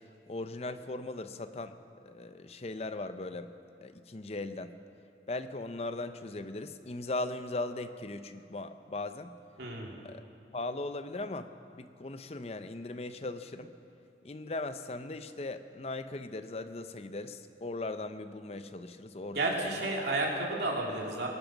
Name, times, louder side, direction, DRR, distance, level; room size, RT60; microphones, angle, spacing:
voice 1, 0.3-1.8 2.0-3.5 3.8-4.7 5.3-9.3 10.0-10.2 10.5-13.7 14.2-19.8, left 2 dB, 35° left, 10 dB, 0.6 m, -38 dB
voice 2, 9.6-10.0 19.3-21.3, right 2 dB, 75° right, -1 dB, 2.4 m, -31 dB
22.0 x 9.1 x 5.9 m, 2.7 s
head